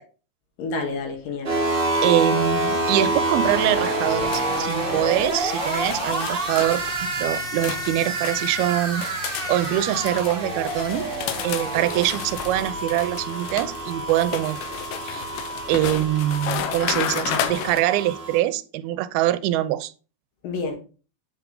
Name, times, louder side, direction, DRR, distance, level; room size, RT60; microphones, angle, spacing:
voice 1, 0.6-2.0 20.4-20.8, left 3 dB, 65° left, 2.9 m, -30 dB
sound 1, 1.4-18.4, right 2 dB, 50° right, 0.6 m, -27 dB
voice 2, 2.0-9.1 9.5-11.1 11.4-14.6 15.0-15.2 15.7-19.9, right 14 dB, 80° right, 2.4 m, -24 dB
sound 2, 2.4-17.8, left 10 dB, 85° left, 2.8 m, -33 dB
8.3 x 4.8 x 3.7 m
omnidirectional pair, 4.6 m